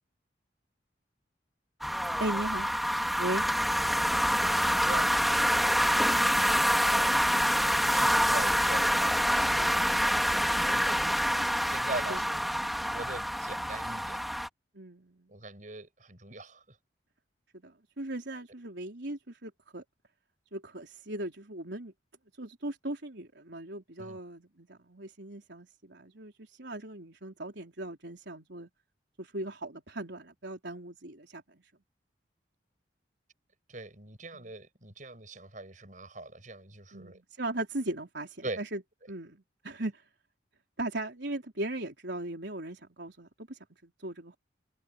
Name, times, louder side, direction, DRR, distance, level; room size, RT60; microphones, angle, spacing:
sound 1, 1.8-14.5, equal, ahead, 3.1 m, -26 dB
voice 1, 2.2-2.7 3.2-3.5 9.6-10.0 12.1-12.2 14.7-15.3 17.5-19.8 20.5-21.9 22.4-28.7 29.2-31.6 34.3-34.5 36.9-38.8 39.1-40.0 40.8-44.4, right 1 dB, 75° right, 3.8 m, -38 dB
voice 2, 4.8-5.7 6.1-7.2 7.9-10.1 10.7-11.0 11.7-12.5 12.9-14.2 15.3-16.8 24.0-24.2 33.7-37.2 38.4-38.6, right 2 dB, 45° right, 6.4 m, -42 dB
head